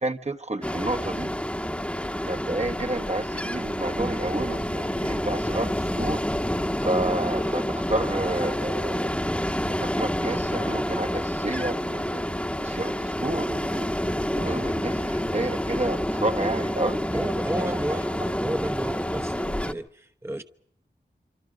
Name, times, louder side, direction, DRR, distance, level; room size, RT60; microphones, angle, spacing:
voice 1, 0.0-1.3 2.2-6.3 6.8-9.1 9.7-12.2 12.6-13.9 14.3-17.2 17.5-18.0, right 2 dB, 40° right, 1.2 m, -30 dB
Ocean, 0.6-19.7, equal, 5° left, 1.2 m, -28 dB
voice 2, 17.1-18.1 18.4-20.4, right 1 dB, 15° right, 1.0 m, -32 dB
26.0 x 25.5 x 5.1 m
wide cardioid pair, 60°, 18 cm